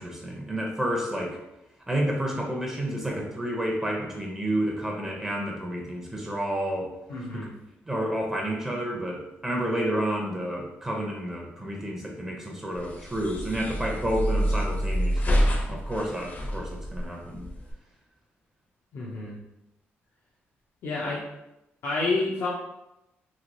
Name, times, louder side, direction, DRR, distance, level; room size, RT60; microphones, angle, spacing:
voice 1, 0.0-1.4 1.9-6.9 7.3-7.5 7.9-17.5, right 1 dB, 10° right, -1 dB, 0.5 m, -30 dB
voice 2, 7.1-7.5 18.9-19.4 20.8-21.2 21.8-22.5, left 3 dB, 80° left, -5 dB, 0.5 m, -29 dB
sound 1, 12.7-17.7, equal, 35° left, 0.5 m, -27 dB
3.0 x 2.8 x 2.6 m, 0.90 s
cardioid pair, 110°, 5 cm